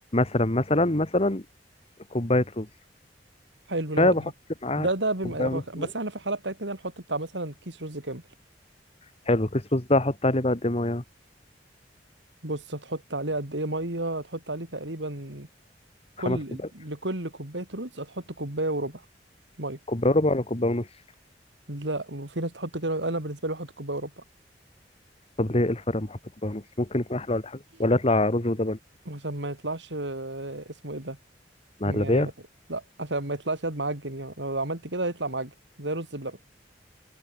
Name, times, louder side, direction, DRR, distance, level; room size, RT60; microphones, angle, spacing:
voice 1, 0.1-1.4 2.1-2.7 4.0-4.2 4.6-4.9 5.4-5.9 9.3-11.0 16.2-16.4 19.9-20.9 25.4-28.8 31.8-32.3, left 1 dB, 35° left, 1.9 m, -24 dB
voice 2, 3.7-4.3 4.8-8.2 12.4-15.5 16.2-19.0 19.6-19.8 21.7-24.2 29.1-31.2 31.8-32.3 32.7-35.5 35.8-36.4, right 2 dB, 90° right, 4.5 m, -32 dB
open air
head